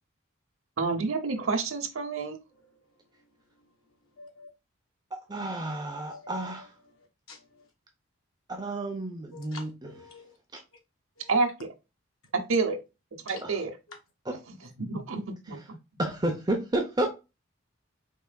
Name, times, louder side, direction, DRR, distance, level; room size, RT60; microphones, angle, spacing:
voice 1, 0.8-2.4 11.3-11.7 12.3-12.8 13.3-13.7 14.5-15.6, right 4 dB, 75° right, 0.8 m, -29 dB
voice 2, 2.6-2.9 4.2-4.5 6.1-6.2 7.3-7.4 9.3-10.3 11.2-11.3 13.3-13.4 13.9-14.0, left 4 dB, 85° left, 1.4 m, -48 dB
voice 3, 5.3-6.7 8.5-9.9 10.5-10.6 13.4-13.5 15.5-15.6 16.0-17.1, right 1 dB, 20° right, 0.6 m, -31 dB
4.6 x 3.3 x 2.2 m
head